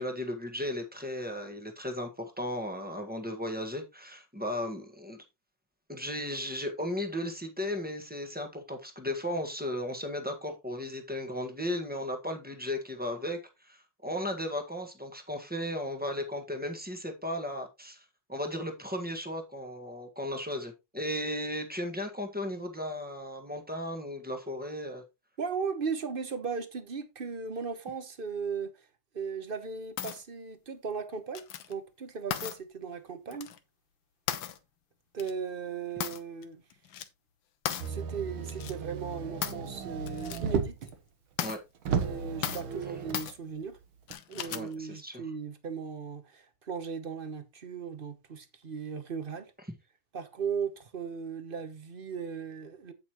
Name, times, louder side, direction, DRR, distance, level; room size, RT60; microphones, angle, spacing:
voice 1, 0.0-5.2 5.9-13.4 13.6-18.0 18.3-25.0 41.4-41.6 44.4-45.2, left 1 dB, 5° right, 1.3 m, -35 dB
voice 2, 25.4-28.7 29.1-33.5 35.1-36.6 37.9-40.9 41.9-43.8 44.3-49.5 50.1-52.9, right 6 dB, 35° right, 0.9 m, -37 dB
sound 1, 30.0-30.2 31.4-31.7 32.3-32.6 33.3-33.6 34.3-34.6 35.2-35.3 36.0-36.4 36.7-37.1 37.7-37.9 38.5-38.7 39.4-39.7 40.1-40.4 40.8-40.9 41.4-41.6 42.4-42.7 43.1-43.3 44.1-44.7, left 10 dB, 70° left, 1.6 m, -35 dB
Motor vehicle (road), 37.8-40.9 41.4-41.5 41.8-43.3 44.1-44.2, right 6 dB, 80° right, 2.0 m, -34 dB
8.6 x 8.3 x 3.0 m
omnidirectional pair, 2.2 m